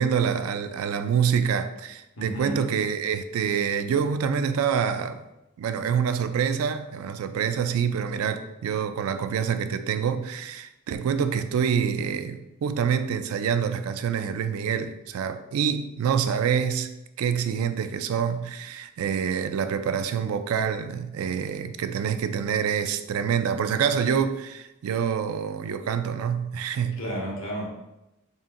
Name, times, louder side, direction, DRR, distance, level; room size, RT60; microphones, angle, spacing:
voice 1, 0.0-5.2 5.6-16.9 17.2-27.0, right 7 dB, 85° right, 10 dB, 0.3 m, -26 dB
voice 2, 2.2-2.7 27.0-27.6, right 1 dB, 70° left, -3 dB, 1.1 m, -32 dB
4.2 x 3.5 x 2.5 m, 0.93 s
head